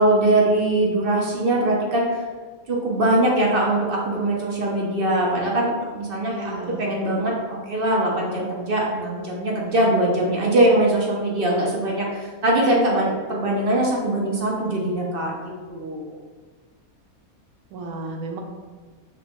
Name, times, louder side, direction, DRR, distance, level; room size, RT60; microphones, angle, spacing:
voice 1, 0.0-2.1 2.7-6.5 6.8-16.1, right 1 dB, 55° right, -2 dB, 0.6 m, -22 dB
voice 2, 6.3-6.9 17.7-18.4, right 2 dB, 90° right, 2 dB, 1.1 m, -33 dB
5.1 x 2.2 x 2.8 m, 1.4 s
omnidirectional pair, 1.5 m